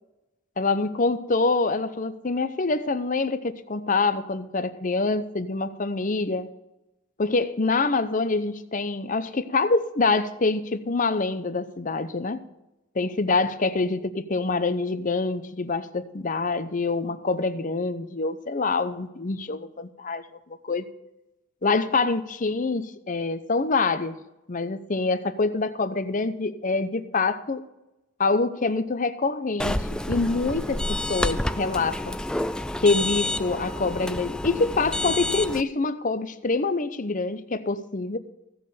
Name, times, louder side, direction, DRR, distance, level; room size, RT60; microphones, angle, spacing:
voice 1, 0.6-6.5 7.2-12.4 13.0-20.2 20.6-20.9 21.6-24.2 24.5-27.6 28.2-32.2 32.8-38.2, left 3 dB, 40° left, 11 dB, 0.7 m, -25 dB
sound 1, 29.6-35.6, left 1 dB, 5° left, 0.4 m, -29 dB
15.5 x 5.5 x 7.7 m, 0.94 s
head